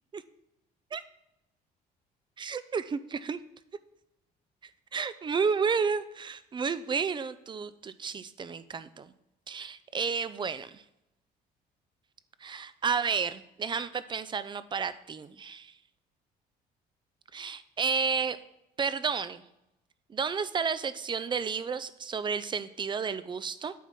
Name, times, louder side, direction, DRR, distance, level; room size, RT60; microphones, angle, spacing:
voice 1, 2.4-3.4 4.9-9.1 9.5-10.8 12.4-15.7 17.3-18.4 18.8-19.4 20.1-23.7, right 5 dB, 30° right, 15 dB, 0.5 m, -31 dB
9.2 x 4.2 x 6.2 m, 0.85 s
cardioid pair, 110°, 17 cm